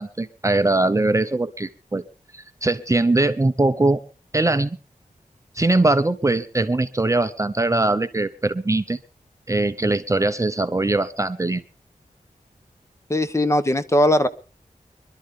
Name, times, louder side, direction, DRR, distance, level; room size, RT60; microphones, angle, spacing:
voice 1, 0.0-2.0 2.3-4.0 4.3-4.8 5.5-9.0 9.5-11.6, right 2 dB, 20° right, 10 dB, 0.6 m, -21 dB
voice 2, 13.1-14.3, left 1 dB, 20° left, 10 dB, 1.0 m, -19 dB
25.0 x 12.0 x 3.6 m, 0.35 s
wide cardioid pair, 100°, 14 cm